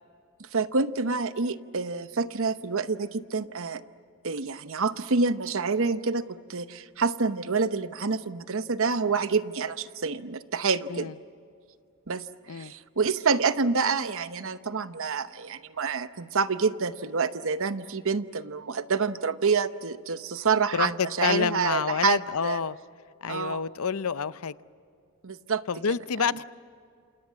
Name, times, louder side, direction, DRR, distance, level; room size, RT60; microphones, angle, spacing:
voice 1, 0.5-3.8 4.2-11.1 12.1-22.6 23.3-23.6 25.2-25.6, right 4 dB, 65° right, 12 dB, 0.9 m, -27 dB
voice 2, 20.7-22.8 23.2-24.5 25.7-26.4, left 6 dB, 75° left, 15 dB, 0.7 m, -28 dB
28.5 x 27.5 x 7.5 m, 2.3 s
head